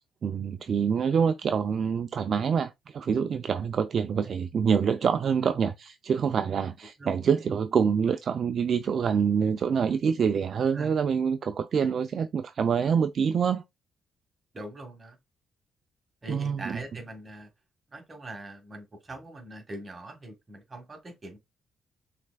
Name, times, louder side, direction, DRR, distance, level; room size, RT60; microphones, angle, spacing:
voice 1, 0.2-13.6 16.3-16.8, right 6 dB, 55° right, 0.4 m, -26 dB
voice 2, 14.5-15.2 16.2-17.5 17.9-21.4, right 1 dB, 30° right, 1.7 m, -42 dB
5.9 x 3.4 x 2.2 m
cardioid pair, 90°, 0 cm